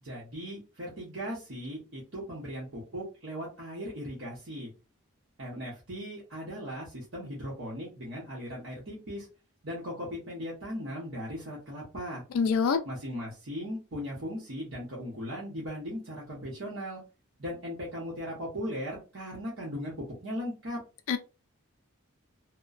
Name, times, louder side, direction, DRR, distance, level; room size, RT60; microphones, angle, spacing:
voice 1, 0.0-4.7 5.4-9.3 9.6-12.2 12.8-17.0 17.4-20.8, equal, 60° right, 0.9 m, -38 dB
voice 2, 12.3-12.8 21.1-21.2, left 5 dB, 80° left, 0.3 m, -24 dB
2.9 x 2.1 x 2.4 m
head